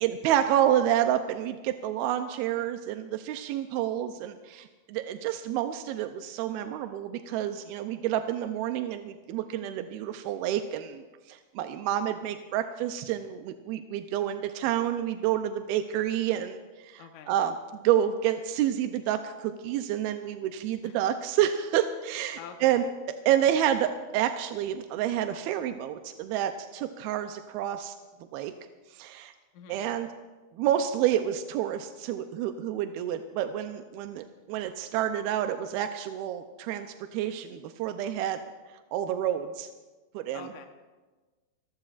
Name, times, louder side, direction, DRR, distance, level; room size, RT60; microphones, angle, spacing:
voice 1, 0.0-22.9 23.3-28.0 28.3-28.5 28.9-29.3 29.7-30.1 30.5-38.4 38.9-39.7 40.1-40.5, right 11 dB, 85° right, 7 dB, 2.6 m, -29 dB
voice 2, 17.0-17.4 20.8-21.0 22.4-22.9 29.5-29.8 40.3-40.7, left 7 dB, 65° left, 4 dB, 2.1 m, -45 dB
29.5 x 14.0 x 2.5 m, 1.3 s
omnidirectional pair, 4.3 m